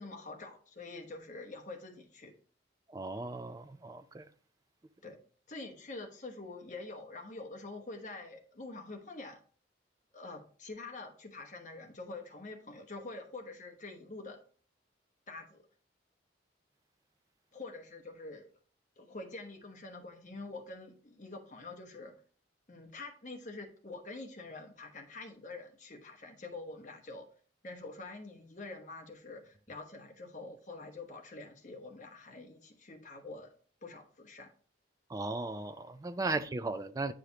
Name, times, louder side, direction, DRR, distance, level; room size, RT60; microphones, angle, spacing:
voice 1, 0.0-2.3 5.0-5.2 5.5-9.4 10.1-14.4 15.3-15.6 17.5-18.5 19.0-22.2 22.7-27.3 27.6-33.5 33.8-34.5, left 3 dB, 40° left, 1.1 m, -46 dB
voice 2, 2.9-4.3 35.1-37.1, right 3 dB, 20° right, 0.3 m, -36 dB
9.3 x 5.0 x 2.9 m
head